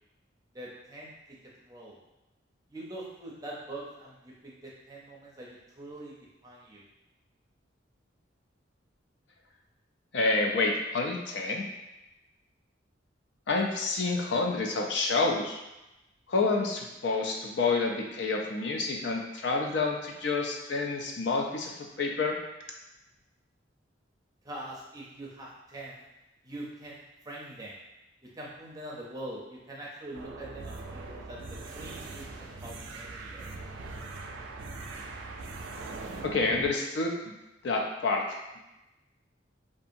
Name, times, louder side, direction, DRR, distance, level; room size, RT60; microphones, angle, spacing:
voice 1, 0.5-1.1 1.6-2.0 2.7-6.2 6.4-6.8 24.4-26.0 26.4-27.8 28.3-33.5, right 1 dB, 20° right, -5 dB, 0.5 m, -43 dB
voice 2, 10.1-11.7 13.5-15.6 16.3-21.7 22.0-22.4 36.2-37.3 37.6-38.6, left 3 dB, 60° left, 1 dB, 0.4 m, -28 dB
sound 1, 30.1-36.7, right 3 dB, 70° right, 0.3 m, -41 dB
2.7 x 2.3 x 2.6 m, 0.96 s
head